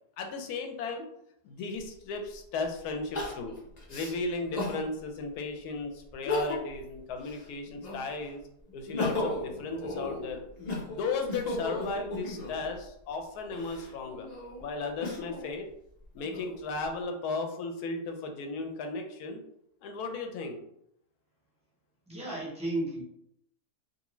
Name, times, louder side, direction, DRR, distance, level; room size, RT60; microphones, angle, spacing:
voice 1, 0.2-1.1 1.4-3.5 3.9-8.4 8.7-10.4 10.9-14.3 14.6-15.7 16.1-19.4 19.8-20.6, left 3 dB, 75° left, 4 dB, 1.1 m, -35 dB
Crying sobbing, 1.8-1.9 3.1-4.8 5.4-5.5 6.1-6.8 7.2-8.2 8.7-12.7 13.4-15.5 16.0-16.8, left 2 dB, 50° left, 0.5 m, -35 dB
voice 2, 22.1-23.0, right 1 dB, 5° right, -6 dB, 0.5 m, -33 dB
2.6 x 2.5 x 3.0 m, 0.75 s
omnidirectional pair, 1.7 m